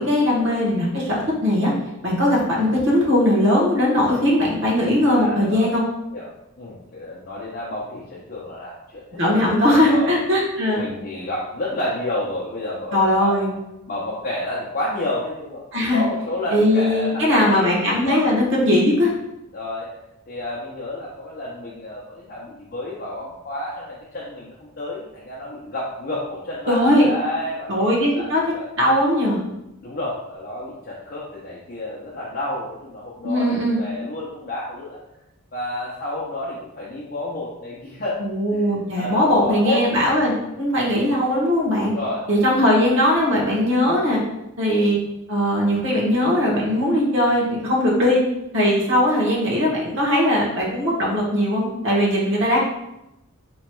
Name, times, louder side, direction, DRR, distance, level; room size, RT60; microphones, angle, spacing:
voice 1, 0.0-1.7 2.0-5.8 9.2-10.9 12.9-13.5 15.7-16.0 16.5-19.1 26.7-27.1 27.7-28.4 28.8-29.4 33.2-33.8 38.2-41.9 42.3-44.2 44.6-45.0 45.3-48.2 48.5-52.6, left 1 dB, 55° right, -4 dB, 1.1 m, -19 dB
voice 2, 5.1-5.7 6.1-10.1 10.8-13.4 13.9-15.6 15.9-17.7 18.0-18.3 19.5-19.9 20.3-28.7 29.8-35.0 35.5-38.2 38.5-39.9 40.3-40.5 41.8-42.7, left 1 dB, 40° left, -6 dB, 0.6 m, -30 dB
4.5 x 3.0 x 2.2 m, 0.89 s
head